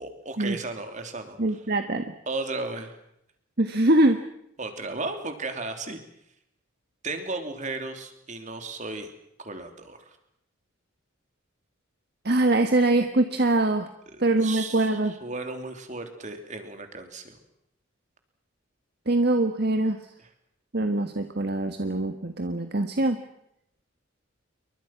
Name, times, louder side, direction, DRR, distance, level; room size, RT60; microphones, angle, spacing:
voice 1, 0.0-1.6 2.3-2.9 4.6-6.0 7.0-9.1 9.4-10.0 14.1-17.4 20.2-20.3, right 3 dB, 35° right, 6 dB, 3.2 m, -35 dB
voice 2, 1.4-2.1 3.6-4.2 12.2-13.9 14.2-15.1 19.1-20.0 20.7-23.2, right 2 dB, 50° right, 7 dB, 1.5 m, -23 dB
28.5 x 23.5 x 5.9 m, 0.79 s
head